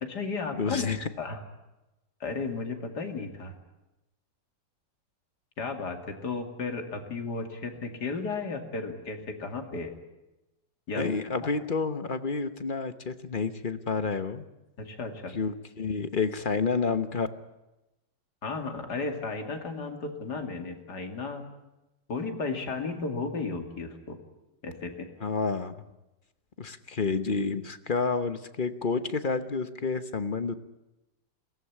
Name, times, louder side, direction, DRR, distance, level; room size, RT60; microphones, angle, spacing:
voice 1, 0.0-0.9 1.2-1.4 2.2-3.6 5.6-9.9 10.9-11.1 14.8-15.3 18.4-21.4 22.1-24.2 24.6-25.1, left 4 dB, 65° left, 5 dB, 3.0 m, -34 dB
voice 2, 0.5-1.1 10.9-14.4 15.3-17.3 25.2-25.7 26.6-30.6, left 4 dB, 35° left, 11 dB, 0.9 m, -29 dB
22.0 x 18.5 x 9.9 m, 0.99 s
omnidirectional pair, 1.9 m